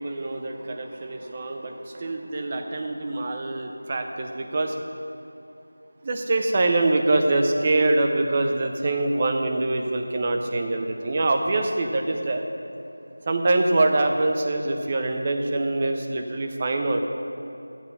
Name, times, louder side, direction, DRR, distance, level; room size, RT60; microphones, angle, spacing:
voice 1, 0.0-4.7 6.0-12.4 13.3-17.0, right 2 dB, 20° right, 4 dB, 0.5 m, -24 dB
11.5 x 8.6 x 5.5 m, 2.9 s
figure-of-eight pair, 180°, 0 cm